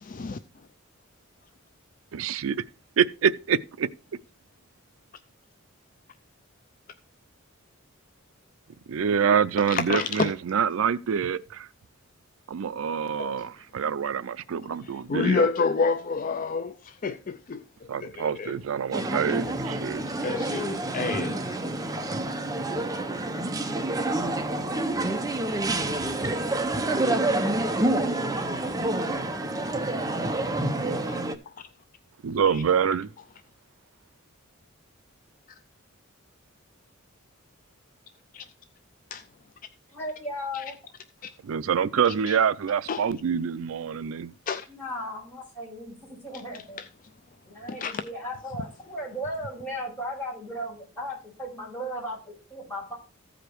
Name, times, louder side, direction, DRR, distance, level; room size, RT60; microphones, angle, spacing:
voice 1, 0.0-0.4 9.7-10.3 13.2-13.3 15.1-16.7 17.0-17.6 18.0-18.5 20.2-21.4 31.1-31.2 38.3-38.4 39.1-39.2 40.5-40.6 42.9-43.0 44.5-44.6 47.7-48.0, left 4 dB, 40° left, 0.4 m, -28 dB
voice 2, 2.1-2.6 3.0-3.9 8.9-11.7 12.5-15.5 17.9-20.0 32.2-33.1 41.5-44.3, right 7 dB, 75° right, 0.4 m, -26 dB
sound 1, 18.9-31.3, right 2 dB, 15° right, 0.7 m, -28 dB
voice 3, 39.9-40.7 44.7-46.8 47.5-52.9, equal, 10° left, 6.0 m, -36 dB
14.5 x 5.0 x 4.6 m
head